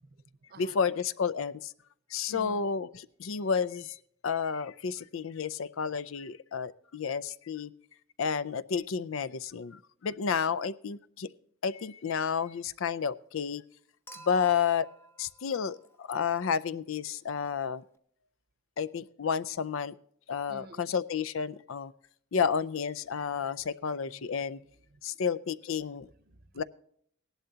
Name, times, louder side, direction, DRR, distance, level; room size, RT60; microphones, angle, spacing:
voice 1, 0.0-0.8 2.3-2.7 20.5-20.9 24.0-25.3 25.9-26.6, right 1 dB, 50° right, 12 dB, 0.8 m, -53 dB
voice 2, 0.6-1.7 2.1-4.0 4.2-7.7 8.2-11.3 11.6-13.6 14.2-14.9 15.2-17.8 18.8-19.9 20.3-21.9 22.3-24.6 25.0-26.1 26.6-26.7, left 6 dB, 75° left, 17 dB, 0.5 m, -31 dB
Human group actions / Chink clink / Liquid, 14.1-16.5 17.9-18.0, right 2 dB, 10° left, 0.7 m, -53 dB
17.0 x 11.5 x 2.8 m, 0.64 s
head